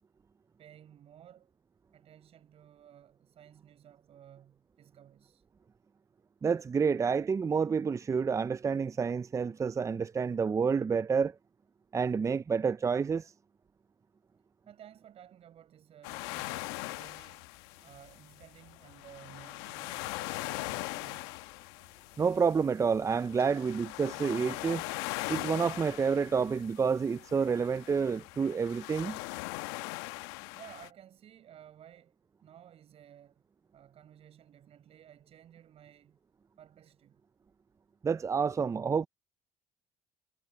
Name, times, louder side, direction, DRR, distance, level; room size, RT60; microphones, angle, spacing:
voice 1, 0.6-1.5 1.9-5.4 14.7-17.5 17.8-21.4 23.4-23.7 30.5-36.2 36.6-37.2, right 10 dB, 55° right, 5.6 m, -55 dB
voice 2, 6.4-11.3 11.9-13.3 22.2-24.8 25.3-29.2 38.0-39.1, right 5 dB, 25° right, 0.5 m, -29 dB
sound 1, 16.0-30.9, left 22 dB, 80° left, 1.2 m, -41 dB
hypercardioid pair, 75°, 13 cm